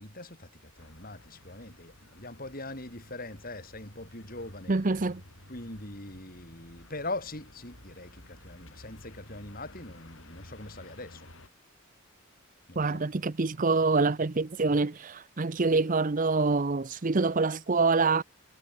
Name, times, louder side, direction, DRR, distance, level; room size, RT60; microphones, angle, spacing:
voice 1, 0.0-4.8 5.5-11.3 12.7-13.0, left 2 dB, 40° left, 7.0 m, -42 dB
sound 1, 0.8-11.5, left 1 dB, 60° left, 5.9 m, -53 dB
voice 2, 4.7-5.2 12.8-18.2, right 3 dB, 35° right, 0.6 m, -26 dB
head